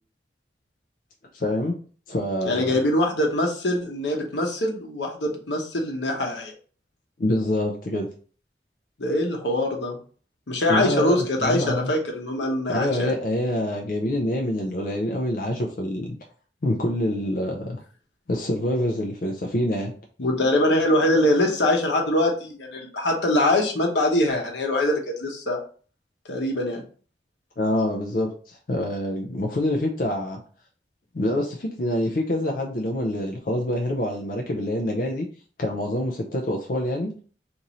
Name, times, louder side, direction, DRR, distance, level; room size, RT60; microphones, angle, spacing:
voice 1, 1.3-1.8 2.1-2.7 7.2-8.1 10.7-11.9 12.7-16.1 16.6-17.8 18.3-19.9 27.6-30.4 31.1-35.3 35.6-37.2, left 1 dB, 50° left, 1 dB, 0.5 m, -26 dB
voice 2, 2.4-6.5 9.0-10.0 10.5-13.1 20.2-25.6 26.3-26.8, left 1 dB, 85° left, 1 dB, 0.9 m, -23 dB
3.0 x 2.6 x 3.9 m, 0.42 s
head